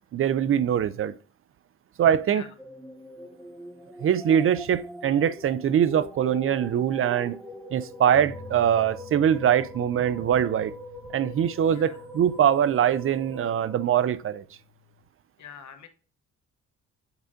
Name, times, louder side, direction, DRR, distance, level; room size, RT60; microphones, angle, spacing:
voice 1, 0.1-1.1 2.0-2.4 4.0-7.4 7.7-10.7 11.1-14.4, right 9 dB, 45° right, 0.4 m, -23 dB
sound 1, 2.6-14.0, left 1 dB, ahead, 0.8 m, -42 dB
sound 2, 8.1-15.0, left 4 dB, 55° left, 2.3 m, -49 dB
voice 2, 11.7-12.1 15.4-15.9, left 8 dB, 70° left, 1.0 m, -45 dB
8.0 x 4.8 x 2.6 m
cardioid pair, 90°, 30 cm